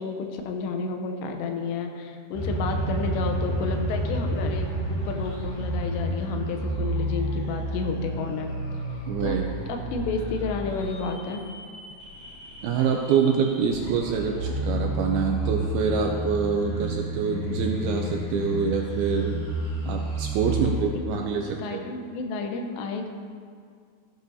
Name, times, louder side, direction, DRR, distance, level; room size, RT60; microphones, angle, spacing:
voice 1, 0.0-8.5 9.2-9.4 9.7-11.4 20.5-20.6 21.2-23.1, left 4 dB, 85° left, 4 dB, 3.0 m, -31 dB
sound 1, 2.3-20.8, right 1 dB, 65° left, 3.7 m, -30 dB
voice 2, 9.1-9.5 12.6-19.4 19.9-21.8, right 6 dB, 80° right, 1 dB, 2.3 m, -26 dB
14.5 x 9.6 x 2.7 m, 2.1 s
omnidirectional pair, 5.0 m